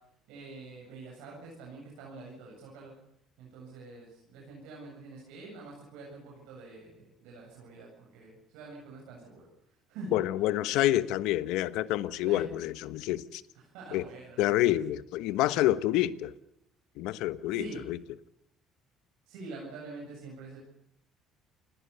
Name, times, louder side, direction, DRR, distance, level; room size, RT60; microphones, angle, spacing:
voice 1, 0.3-2.9 3.4-9.5 9.9-10.2 12.2-12.4 13.7-14.6 17.5-17.8 19.3-20.6, right 3 dB, 85° right, 7.8 m, -45 dB
voice 2, 10.1-13.4 13.9-14.0 14.4-16.3 17.0-18.0, left 14 dB, 80° left, 1.1 m, -28 dB
28.5 x 19.0 x 7.0 m
supercardioid pair, 80°, 0 cm